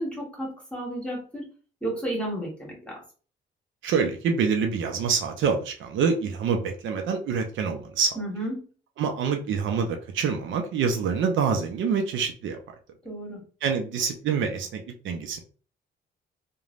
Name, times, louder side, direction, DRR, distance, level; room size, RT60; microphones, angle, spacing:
voice 1, 0.0-1.5 1.8-3.0 8.1-8.6 13.0-13.4, right 1 dB, 5° left, -2 dB, 1.4 m, -32 dB
voice 2, 3.8-8.2 9.0-12.6 13.6-15.4, right 6 dB, 75° right, 4 dB, 0.6 m, -26 dB
3.1 x 2.2 x 2.5 m, 0.38 s
cardioid pair, 90°, 20 cm